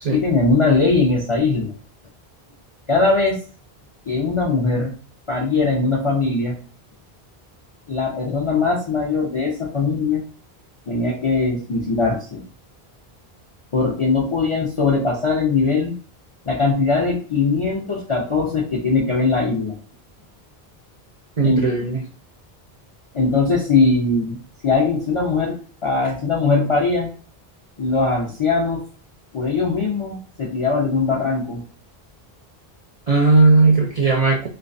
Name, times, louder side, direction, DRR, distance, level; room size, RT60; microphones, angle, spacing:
voice 1, 0.1-1.7 2.9-3.4 4.1-4.9 5.3-6.6 7.9-10.2 10.9-12.4 13.7-16.0 16.5-19.8 21.4-21.7 23.1-25.6 25.8-27.1 27.8-28.8 29.3-31.6, left 3 dB, 50° left, -2 dB, 0.4 m, -20 dB
voice 2, 21.4-22.0 33.1-34.5, right 3 dB, 55° right, -1 dB, 0.4 m, -16 dB
2.3 x 2.2 x 2.5 m, 0.39 s
omnidirectional pair, 1.0 m